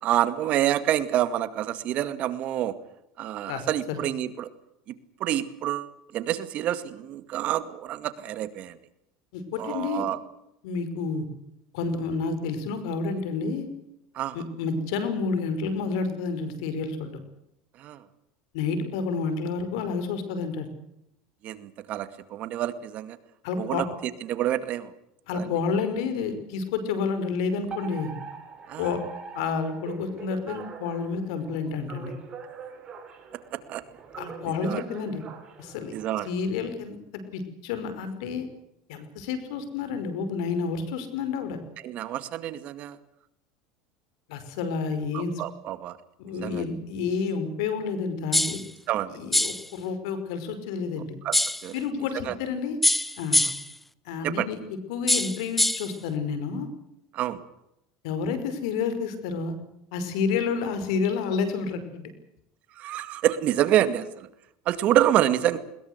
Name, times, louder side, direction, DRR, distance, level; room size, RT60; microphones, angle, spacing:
voice 1, 0.0-2.7 3.2-4.5 5.2-8.7 9.6-10.2 14.1-14.4 17.8-18.0 21.4-23.2 23.6-23.9 24.3-24.9 25.3-25.5 28.7-28.9 33.5-33.8 34.6-34.8 35.9-36.3 41.8-43.0 45.1-46.0 46.4-46.6 48.9-49.2 51.2-51.7 52.2-52.3 54.2-54.5 57.1-57.4 62.8-64.3 64.7-65.6, right 12 dB, 50° right, 12 dB, 2.1 m, -27 dB
voice 2, 3.5-4.0 9.3-10.1 10.6-11.3 11.7-13.7 14.3-17.2 18.5-20.7 23.4-23.9 25.3-28.1 28.8-29.0 29.3-32.1 34.2-35.2 35.6-35.9 36.2-37.0 37.3-38.5 38.9-41.6 44.3-45.4 46.2-48.6 49.1-51.1 51.7-52.8 53.2-53.4 54.1-54.6 54.9-56.7 58.0-59.6 59.9-62.1, left 5 dB, 75° left, 10 dB, 5.4 m, -29 dB
Alarm, 27.7-36.3, right 6 dB, 30° right, 6.4 m, -42 dB
sound 1, 48.3-48.7 49.3-49.7 51.3-51.7 52.8-53.7 55.1-55.9, left 1 dB, 5° left, 0.9 m, -23 dB
21.5 x 21.0 x 8.2 m, 0.80 s
supercardioid pair, 125°, 3 cm